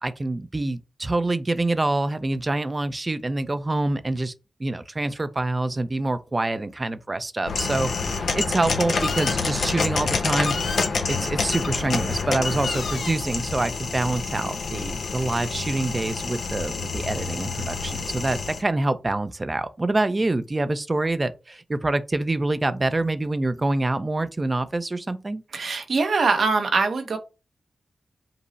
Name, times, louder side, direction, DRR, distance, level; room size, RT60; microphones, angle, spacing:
voice 1, 0.0-4.3 4.6-10.5 11.1-25.4, right 2 dB, 30° right, 0.5 m, -26 dB
sound 1, 7.5-18.6, left 4 dB, 85° left, 0.8 m, -27 dB
voice 2, 25.5-27.2, right 4 dB, 70° right, 0.8 m, -22 dB
5.3 x 2.0 x 4.0 m
cardioid pair, 80°, 0 cm